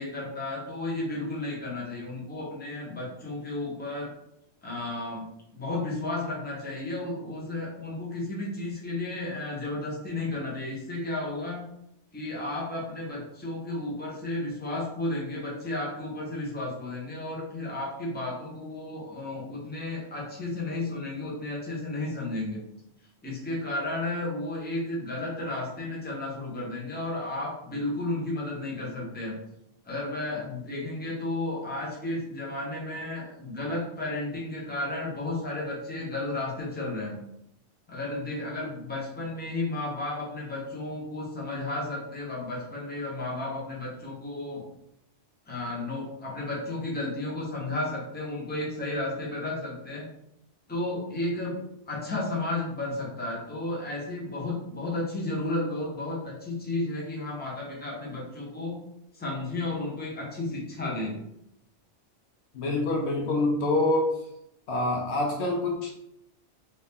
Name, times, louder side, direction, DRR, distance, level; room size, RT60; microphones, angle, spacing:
voice 1, 0.0-4.1 4.6-5.3 5.5-11.7 12.1-22.6 23.2-29.4 29.8-37.2 37.9-44.6 45.5-50.0 50.7-51.6 51.9-58.8 59.1-61.2, left 2 dB, 10° left, -4 dB, 0.8 m, -33 dB
voice 2, 62.5-64.2 64.7-65.9, left 2 dB, 70° left, 2 dB, 0.8 m, -26 dB
2.8 x 2.7 x 3.5 m, 0.80 s
omnidirectional pair, 1.2 m